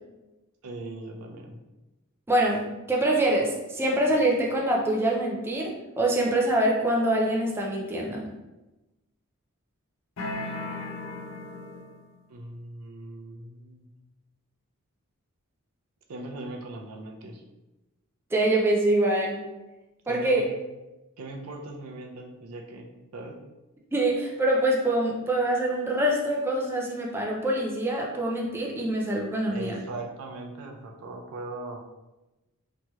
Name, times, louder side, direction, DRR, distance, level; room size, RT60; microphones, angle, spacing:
voice 1, 0.6-1.6 12.3-13.9 16.1-17.4 20.1-20.5 21.2-23.4 29.5-31.8, right 2 dB, 85° right, 2 dB, 0.5 m, -39 dB
voice 2, 2.3-8.3 18.3-19.4 20.1-20.5 23.9-29.8, right 1 dB, 10° right, -2 dB, 0.3 m, -25 dB
sound 1, 10.2-12.1, left 2 dB, 60° left, 0.5 m, -36 dB
3.0 x 2.8 x 2.3 m, 1.0 s
head